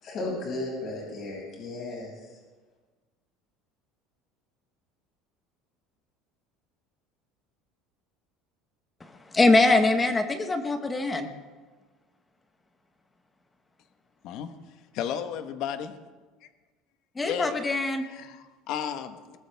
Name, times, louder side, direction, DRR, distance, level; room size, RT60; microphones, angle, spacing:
voice 1, 0.0-2.1, left 2 dB, 35° left, 6.6 m, -34 dB
voice 2, 9.0-11.3 17.2-18.1, left 2 dB, 10° left, 1.0 m, -23 dB
voice 3, 14.9-15.9 17.2-17.7 18.1-19.4, left 9 dB, 50° left, 1.2 m, -33 dB
21.0 x 18.0 x 3.5 m
cardioid pair, 160°, 0 cm